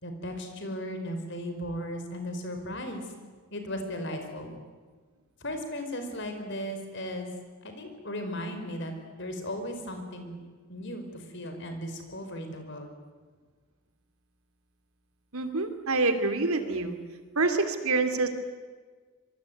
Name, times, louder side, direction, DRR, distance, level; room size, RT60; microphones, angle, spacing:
voice 1, 0.0-3.0 3.5-4.5 5.4-7.3 7.6-10.3 10.7-12.9, equal, 55° left, 6 dB, 5.0 m, -36 dB
voice 2, 15.3-16.9 17.3-18.3, right 3 dB, 80° right, 7 dB, 3.1 m, -26 dB
26.0 x 23.0 x 9.5 m, 1.5 s
head